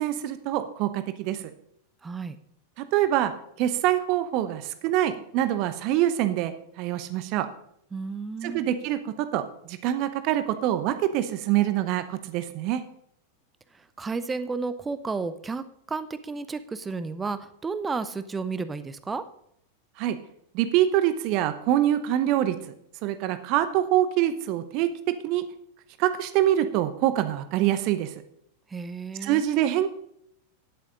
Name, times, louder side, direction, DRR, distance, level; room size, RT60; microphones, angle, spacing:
voice 1, 0.0-1.4 2.8-3.3 3.6-7.5 8.4-12.8 20.0-20.2 20.5-22.6 23.0-25.5 26.0-28.1 29.2-29.9, right 12 dB, 40° right, 11 dB, 0.8 m, -25 dB
voice 2, 2.0-2.4 7.9-8.6 13.7-19.2 28.7-29.4, right 4 dB, 15° right, 13 dB, 0.6 m, -32 dB
10.5 x 8.5 x 5.2 m, 0.71 s
figure-of-eight pair, 90°, 0 cm